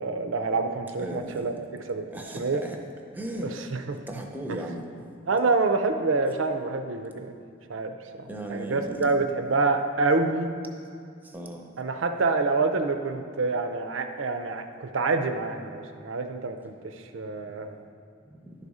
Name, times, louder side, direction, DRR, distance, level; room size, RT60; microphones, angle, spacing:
voice 1, 0.0-1.6 1.9-2.6 3.4-4.0 4.5-4.7 5.3-7.3 7.7-10.5 11.8-17.8, right 3 dB, 75° right, 7 dB, 0.5 m, -27 dB
voice 2, 1.0-1.5 2.1-2.8 3.1-3.7 4.1-4.9 8.3-9.1 11.2-11.7 17.4-17.5 18.2-18.5, right 1 dB, 10° right, 2 dB, 0.6 m, -37 dB
11.0 x 4.1 x 4.8 m, 2.3 s
head